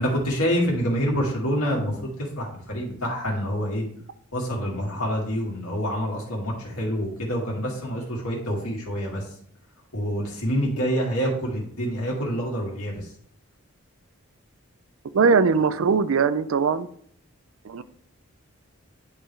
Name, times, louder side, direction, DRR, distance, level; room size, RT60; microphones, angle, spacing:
voice 1, 0.0-3.8 4.3-9.3 9.9-13.1, equal, 90° left, -2 dB, 2.2 m, -27 dB
voice 2, 15.1-16.9 17.6-17.8, right 5 dB, 65° right, 14 dB, 0.4 m, -20 dB
10.5 x 3.8 x 3.3 m, 0.64 s
head